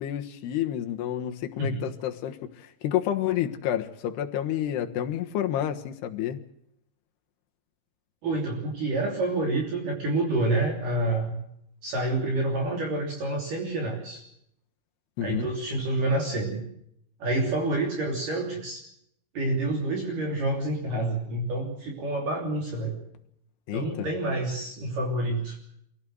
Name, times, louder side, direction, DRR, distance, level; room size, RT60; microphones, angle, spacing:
voice 1, 0.0-6.4 15.2-15.5 23.7-24.1, left 11 dB, 70° left, 3.3 m, -29 dB
voice 2, 8.2-11.4 11.8-14.2 15.2-16.6 17.2-18.8 19.3-23.0 23.7-25.6, right 2 dB, 50° right, 4.6 m, -28 dB
25.5 x 16.5 x 7.8 m
omnidirectional pair, 5.2 m